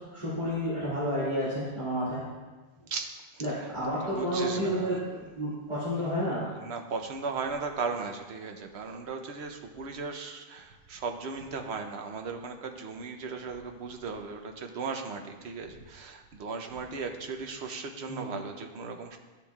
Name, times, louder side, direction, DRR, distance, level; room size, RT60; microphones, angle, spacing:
voice 1, 0.0-2.2 3.4-6.5 18.1-18.3, equal, 45° right, -11 dB, 2.3 m, -31 dB
voice 2, 2.9-3.7 4.0-5.0 6.3-19.2, right 4 dB, 75° right, 4 dB, 1.0 m, -37 dB
13.0 x 7.0 x 2.3 m, 1.3 s
omnidirectional pair, 1.1 m